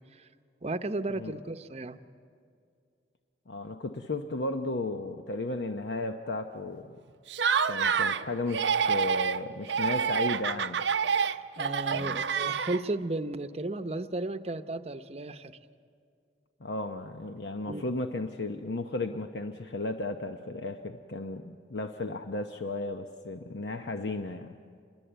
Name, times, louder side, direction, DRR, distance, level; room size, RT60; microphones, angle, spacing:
voice 1, 0.6-2.0 11.6-15.6 17.6-17.9, right 2 dB, 35° right, 10 dB, 0.8 m, -34 dB
voice 2, 3.5-7.0 7.7-10.8 11.9-12.2 16.6-24.6, left 2 dB, 75° left, 6 dB, 0.9 m, -34 dB
Laughter, 7.3-8.2 8.5-9.4 9.7-13.0, right 6 dB, 85° right, 0.7 m, -27 dB
27.5 x 21.5 x 8.0 m, 2.3 s
head